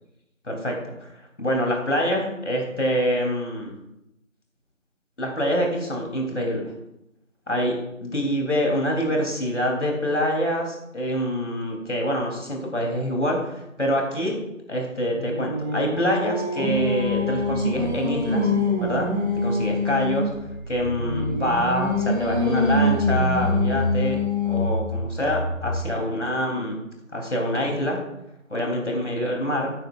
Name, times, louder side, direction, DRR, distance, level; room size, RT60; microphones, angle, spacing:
voice 1, 0.4-1.1 1.4-3.7 5.2-6.7 7.5-14.4 14.7-18.5 18.8-19.1 19.4-20.3 20.7-26.8 27.1-28.0 28.5-29.7, equal, 60° left, 0 dB, 3.1 m, -26 dB
Singing, 14.9-20.3 21.0-24.8, left 2 dB, 15° right, 4.0 m, -25 dB
sound 1, 16.6-25.8, equal, 35° left, 3.4 m, -31 dB
13.0 x 9.2 x 2.4 m, 0.84 s
figure-of-eight pair, 170°, 40 cm